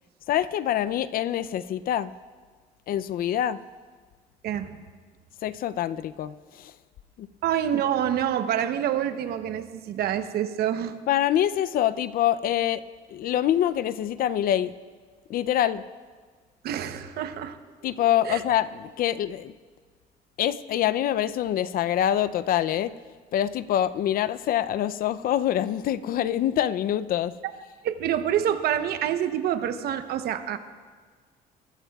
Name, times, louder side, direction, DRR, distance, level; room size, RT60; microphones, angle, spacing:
voice 1, 0.3-2.1 2.9-3.6 5.4-6.7 7.2-7.3 11.1-12.8 13.1-14.7 15.3-15.8 17.8-19.5 20.4-22.9 23.3-27.4, left 11 dB, 60° left, 15 dB, 0.5 m, -25 dB
voice 2, 4.4-4.8 7.4-11.0 16.6-17.6 18.2-18.4 27.8-30.6, right 10 dB, 70° right, 10 dB, 0.8 m, -27 dB
23.0 x 14.0 x 2.3 m, 1.5 s
cardioid pair, 110°, 17 cm